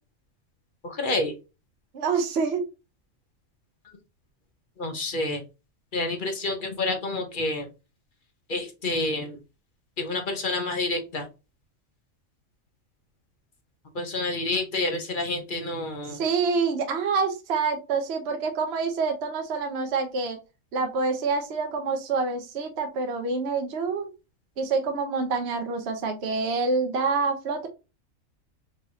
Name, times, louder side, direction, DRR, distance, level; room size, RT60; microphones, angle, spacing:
voice 1, 0.8-1.3 4.8-5.4 5.9-7.7 8.5-9.4 10.0-11.3 13.9-16.2, left 2 dB, 40° left, 4 dB, 1.0 m, -28 dB
voice 2, 1.9-2.6 16.1-20.4 20.7-24.1 24.6-27.7, right 4 dB, 55° right, 5 dB, 0.9 m, -27 dB
4.7 x 2.9 x 2.7 m, 0.28 s
omnidirectional pair, 1.4 m